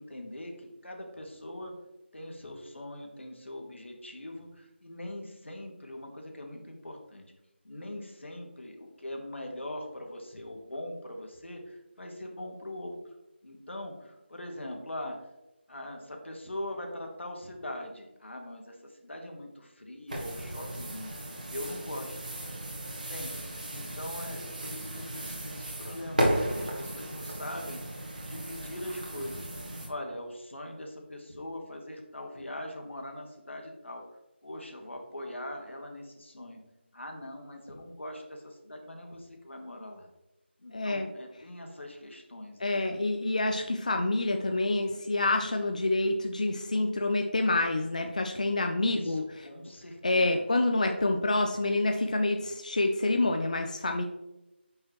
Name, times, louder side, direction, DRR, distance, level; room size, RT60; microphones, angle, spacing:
voice 1, 0.0-1.7 2.1-7.2 7.6-13.0 13.4-15.3 15.7-21.1 21.5-22.2 23.1-27.8 28.2-29.5 29.9-34.0 34.4-36.6 36.9-40.1 40.6-43.0 48.8-50.4, left 1 dB, 85° left, 2 dB, 1.7 m, -41 dB
sound 1, 20.1-29.9, right 1 dB, 40° right, 1.5 m, -35 dB
voice 2, 40.7-41.1 42.6-49.2 50.0-54.0, left 2 dB, 40° left, 4 dB, 0.5 m, -27 dB
6.5 x 5.7 x 3.0 m, 0.97 s
figure-of-eight pair, 175°, 6 cm